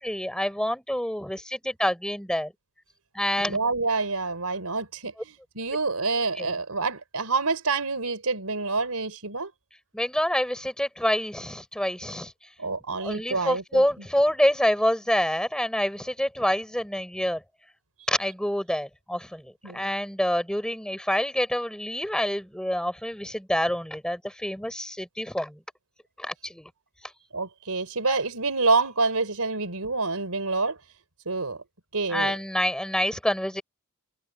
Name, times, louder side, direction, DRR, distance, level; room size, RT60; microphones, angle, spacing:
voice 1, 0.0-2.5 3.1-3.6 6.4-6.5 9.9-12.3 13.0-17.4 18.1-25.6 26.2-26.7 32.1-33.6, equal, 5° left, 5.5 m, -27 dB
voice 2, 3.4-9.5 12.6-13.8 19.6-19.9 27.3-30.8 31.3-31.6 31.9-32.4, right 3 dB, 80° right, 4.1 m, -27 dB
head